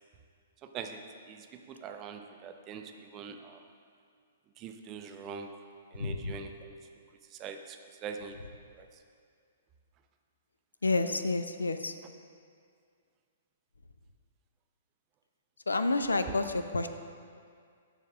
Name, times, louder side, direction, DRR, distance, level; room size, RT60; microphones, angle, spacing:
voice 1, 0.6-1.0 1.3-3.6 4.6-5.5 5.9-6.7 7.3-8.4 8.7-8.9 16.3-16.5, right 6 dB, 25° right, 5 dB, 0.5 m, -43 dB
voice 2, 6.0-6.4 10.8-11.9 15.7-16.9, left 3 dB, 75° left, 9 dB, 0.4 m, -29 dB
7.0 x 3.5 x 6.0 m, 2.2 s
figure-of-eight pair, 115°, 0 cm